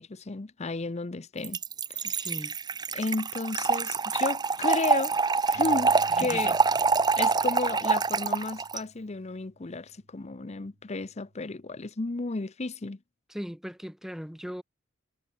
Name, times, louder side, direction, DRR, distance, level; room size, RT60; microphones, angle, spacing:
voice 1, 0.0-1.6 1.9-2.3 2.9-5.2 5.5-6.5 7.1-13.0, left 3 dB, 30° left, 0.7 m, -33 dB
Trickle dribble / Fill (with liquid), 1.4-8.8, right 4 dB, 20° right, 0.6 m, -26 dB
voice 2, 2.0-2.6 6.1-6.6 13.3-14.6, equal, ahead, 1.0 m, -39 dB
Bass guitar, 5.5-11.8, equal, 85° right, 6.5 m, -54 dB
head